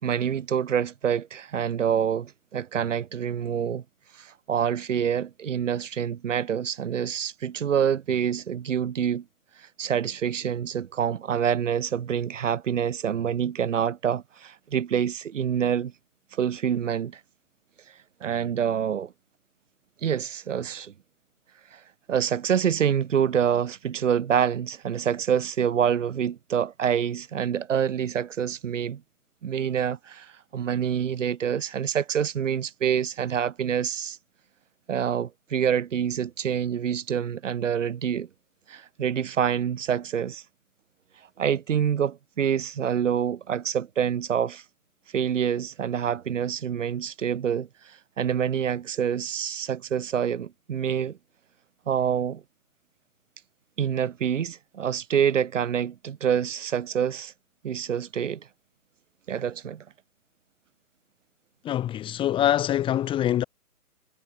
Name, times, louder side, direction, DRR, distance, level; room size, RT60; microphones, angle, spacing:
voice 1, 0.0-3.8 4.1-9.2 9.6-15.9 16.3-17.2 18.2-19.1 20.0-20.9 21.7-21.8 22.1-29.0 29.4-34.2 34.9-38.3 38.7-40.4 41.4-44.6 45.1-51.2 51.9-52.4 53.8-57.3 57.6-58.5 59.3-59.8, right 8 dB, 50° right, 4.7 m, -26 dB
voice 2, 61.6-63.4, left 11 dB, 10° left, 2.4 m, -24 dB
hypercardioid pair, 155°, 46 cm